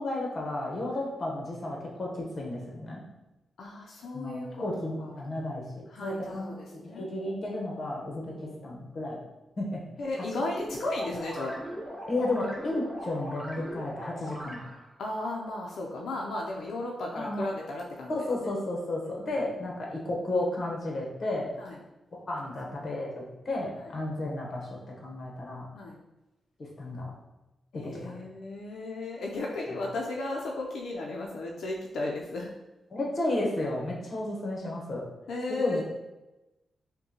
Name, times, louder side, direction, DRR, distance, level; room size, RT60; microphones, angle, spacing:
voice 1, 0.0-3.0 4.1-9.2 9.6-9.8 10.4-10.5 12.1-14.6 17.1-17.5 18.1-21.5 22.3-25.7 26.6-27.1 27.7-28.1 32.9-35.0 35.5-35.8, left 2 dB, 40° left, -1 dB, 0.9 m, -33 dB
voice 2, 3.6-4.6 5.0-5.3 5.9-7.1 8.2-8.4 10.0-11.5 15.0-18.5 19.1-19.2 21.6-21.8 25.8-26.0 27.7-32.5 35.3-35.8, left 2 dB, 80° left, -1 dB, 0.5 m, -35 dB
sound 1, 10.6-15.0, equal, 10° right, 0.6 m, -40 dB
5.3 x 2.2 x 2.8 m, 1.0 s
wide cardioid pair, 145°, 0 cm